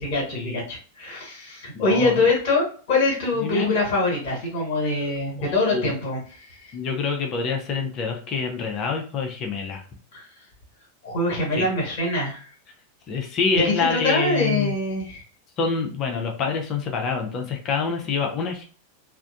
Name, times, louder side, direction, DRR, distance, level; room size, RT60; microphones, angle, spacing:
voice 1, 0.0-6.2 6.5-6.7 10.1-10.3 11.0-12.5 13.6-15.2, left 2 dB, 50° left, -3 dB, 1.4 m, -24 dB
voice 2, 1.7-2.2 3.4-3.7 4.8-4.9 5.4-5.9 6.7-9.8 11.6-11.7 13.1-14.7 15.6-18.6, left 5 dB, 35° left, 3 dB, 0.7 m, -26 dB
3.4 x 2.6 x 2.5 m, 0.40 s
figure-of-eight pair, 90°, 0 cm